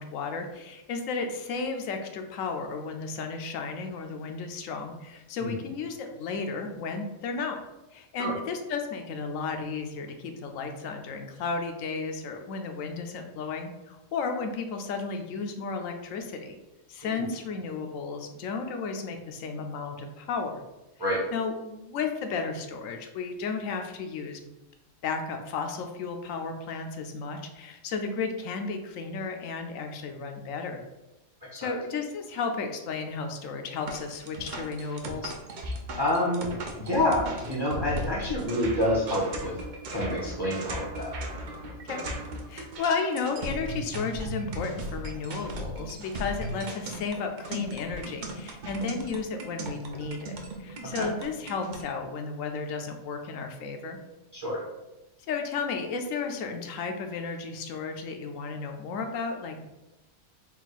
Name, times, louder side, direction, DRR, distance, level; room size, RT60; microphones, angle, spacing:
voice 1, 0.0-7.6 7.9-16.6 16.9-20.6 21.3-24.4 25.0-30.8 31.5-35.3 40.6-40.8 41.8-42.0 42.5-54.0 55.3-59.7, left 4 dB, 75° left, 5 dB, 0.9 m, -33 dB
sound 1, 33.9-51.8, right 1 dB, 60° right, 0.5 m, -37 dB
voice 2, 36.0-36.4 36.7-39.5 39.9-41.1 51.0-51.1 54.3-54.6, left 1 dB, 20° right, -4 dB, 0.7 m, -27 dB
4.2 x 2.3 x 4.0 m, 1.0 s
omnidirectional pair, 1.4 m